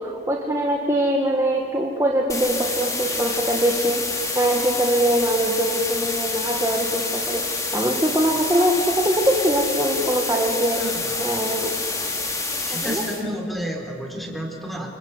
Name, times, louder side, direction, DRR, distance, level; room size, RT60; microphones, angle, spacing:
voice 1, 0.0-4.0 4.4-7.4 7.7-10.8 11.2-11.7 12.7-13.0, right 1 dB, 15° right, -1 dB, 1.9 m, -22 dB
sound 1, 2.3-13.2, left 3 dB, 20° left, 2.8 m, -27 dB
voice 2, 10.8-11.3 12.6-14.9, equal, ahead, 1 dB, 4.0 m, -31 dB
28.5 x 25.5 x 8.3 m, 2.4 s
head